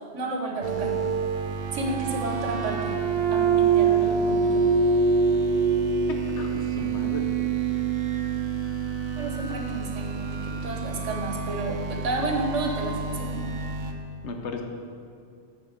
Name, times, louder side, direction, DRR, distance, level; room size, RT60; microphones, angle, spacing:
voice 1, 0.1-1.0 1.7-2.9 3.3-4.6 9.2-13.4, right 2 dB, 85° right, 2 dB, 1.4 m, -31 dB
sound 1, 0.6-13.9, right 5 dB, 60° right, 0.8 m, -26 dB
voice 2, 6.1-7.3 14.2-14.6, left 3 dB, 70° left, 4 dB, 1.1 m, -35 dB
9.1 x 4.1 x 6.4 m, 2.3 s
omnidirectional pair, 1.2 m